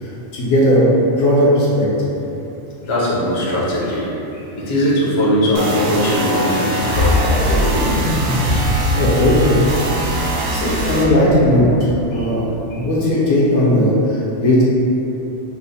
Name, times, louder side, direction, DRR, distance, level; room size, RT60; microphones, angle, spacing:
voice 1, 0.0-0.8 1.2-1.9 8.6-9.6 10.2-11.7 12.0-12.5 12.7-14.6, left 1 dB, 75° left, -7 dB, 1.1 m, -16 dB
voice 2, 2.8-4.1 4.3-7.3 12.1-12.3 12.7-12.8, equal, 35° left, -7 dB, 0.5 m, -19 dB
sound 1, 5.5-11.0, right 1 dB, 65° right, 0.7 m, -23 dB
sound 2, 6.7-12.8, left 1 dB, 55° left, 0.8 m, -22 dB
3.2 x 2.1 x 4.0 m, 2.9 s
omnidirectional pair, 1.2 m